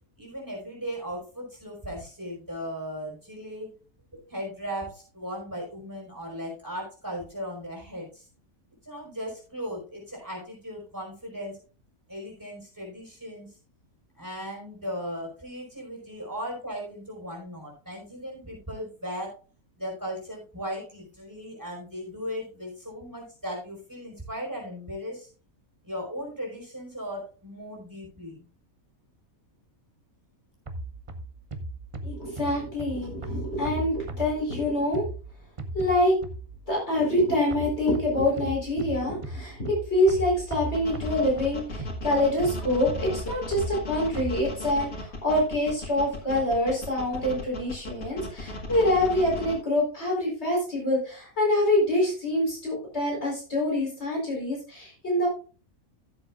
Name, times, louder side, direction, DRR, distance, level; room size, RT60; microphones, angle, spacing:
voice 1, 0.2-3.7 4.1-8.2 8.8-11.6 12.1-13.6 14.1-19.4 19.8-25.3 25.8-28.5, equal, 15° right, -2 dB, 5.0 m, -37 dB
sound 1, 30.7-36.7 37.5-44.4, right 2 dB, 30° right, 0.7 m, -38 dB
voice 2, 32.0-35.0 35.7-36.1 36.7-55.3, left 1 dB, 50° left, -3 dB, 4.5 m, -25 dB
sound 2, 40.7-49.5, left 2 dB, 85° left, 2.3 m, -36 dB
16.0 x 7.6 x 2.4 m, 0.36 s
omnidirectional pair, 1.5 m